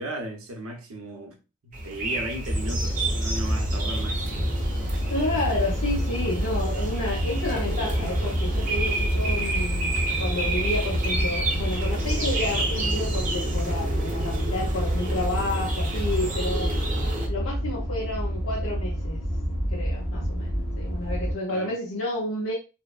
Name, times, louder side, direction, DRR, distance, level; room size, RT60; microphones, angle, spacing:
voice 1, 0.0-1.4 1.6-4.3 21.5-21.7, right 1 dB, 75° right, 0.7 m, -36 dB
sound 1, 1.7-17.3, right 1 dB, 35° right, 0.6 m, -30 dB
sound 2, 2.4-21.3, equal, 25° left, 0.9 m, -28 dB
voice 2, 5.1-16.7 17.3-19.2 19.7-22.5, left 2 dB, 60° left, 0.6 m, -30 dB
3.1 x 2.0 x 2.3 m
head